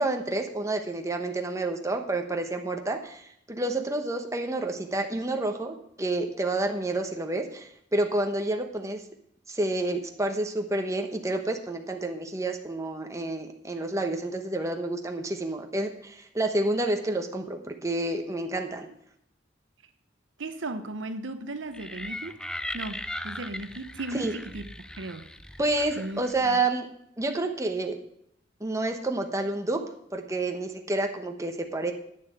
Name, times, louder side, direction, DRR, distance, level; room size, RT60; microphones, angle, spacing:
voice 1, 0.0-9.0 9.5-18.9 24.1-24.3 25.6-26.9 27.2-28.0 28.6-29.8 30.1-31.9, right 2 dB, 15° right, 1.1 m, -29 dB
voice 2, 20.4-22.3 22.7-25.3 26.0-26.6, right 2 dB, 75° right, 0.9 m, -36 dB
sound 1, 21.7-26.6, left 1 dB, 5° left, 0.4 m, -39 dB
9.5 x 6.9 x 8.0 m
head